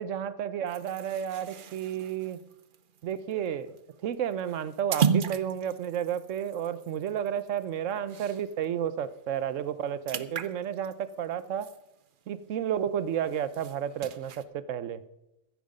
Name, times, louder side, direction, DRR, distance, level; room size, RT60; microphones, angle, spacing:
voice 1, 0.0-2.4 3.0-3.8 4.0-11.7 12.3-15.0, right 9 dB, 80° right, 15 dB, 1.1 m, -32 dB
sound 1, 0.7-8.7 9.0-9.2 9.5-12.4 12.8-14.4, right 6 dB, 50° right, 0.7 m, -35 dB
15.0 x 8.7 x 5.3 m, 0.88 s
omnidirectional pair, 1.3 m